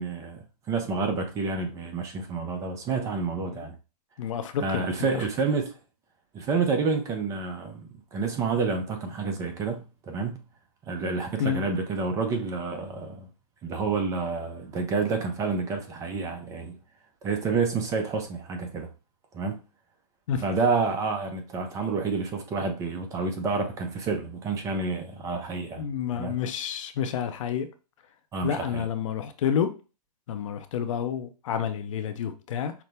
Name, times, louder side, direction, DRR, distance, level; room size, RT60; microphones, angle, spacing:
voice 1, 0.0-3.7 4.6-5.7 6.3-10.4 10.9-13.3 13.6-16.8 17.2-18.9 19.3-19.6 20.4-25.9 26.1-26.4 28.3-28.9, right 4 dB, 15° right, 0.5 m, -29 dB
voice 2, 4.2-4.9 5.1-5.3 11.4-11.6 20.3-20.4 25.8-27.7 28.4-29.7 30.3-32.7, left 8 dB, 50° left, 0.6 m, -29 dB
5.8 x 2.1 x 3.3 m
hypercardioid pair, 135°, 21 cm